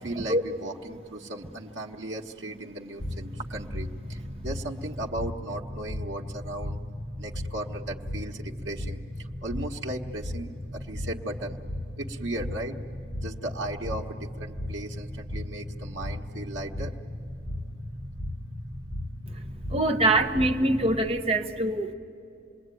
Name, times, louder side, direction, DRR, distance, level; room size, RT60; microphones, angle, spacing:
voice 1, 0.0-6.8 7.2-11.6 12.0-12.7 13.2-16.9, right 1 dB, 85° right, 0 dB, 1.3 m, -36 dB
sound 1, 3.0-21.1, left 1 dB, 55° left, 2.1 m, -36 dB
voice 2, 19.7-21.9, right 2 dB, 30° right, 5 dB, 1.1 m, -24 dB
27.5 x 21.0 x 9.2 m, 2.6 s
head